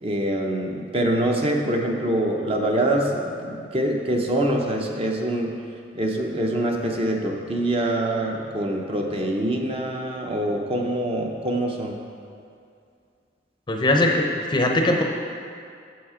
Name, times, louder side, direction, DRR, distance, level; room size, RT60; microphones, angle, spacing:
voice 1, 0.0-5.5 5.9-12.0, right 1 dB, 35° right, 1 dB, 0.8 m, -25 dB
voice 2, 13.7-15.0, left 1 dB, 25° left, 2 dB, 0.6 m, -20 dB
7.3 x 6.0 x 4.9 m, 2.4 s
head